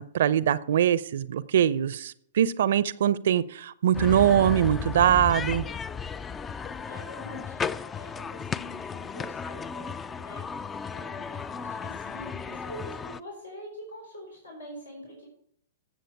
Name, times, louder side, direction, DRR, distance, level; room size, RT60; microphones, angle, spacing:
voice 1, 0.0-5.6, right 10 dB, 60° right, 17 dB, 0.6 m, -23 dB
sound 1, 3.9-13.2, left 6 dB, 15° left, 0.4 m, -34 dB
voice 2, 6.9-10.5 10.9-15.3, equal, 85° left, -1 dB, 4.2 m, -45 dB
14.0 x 7.6 x 4.7 m, 0.65 s
figure-of-eight pair, 110°, 0 cm